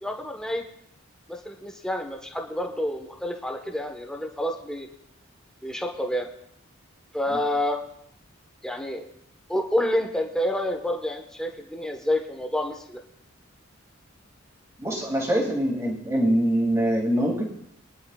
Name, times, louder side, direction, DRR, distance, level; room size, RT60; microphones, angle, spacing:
voice 1, 0.0-0.6 1.3-4.9 5.6-6.3 7.1-7.8 8.6-9.0 9.5-13.0, left 1 dB, 5° left, 2 dB, 1.2 m, -28 dB
voice 2, 14.8-17.4, equal, 15° right, -1 dB, 2.4 m, -24 dB
23.5 x 10.5 x 2.4 m, 0.71 s
head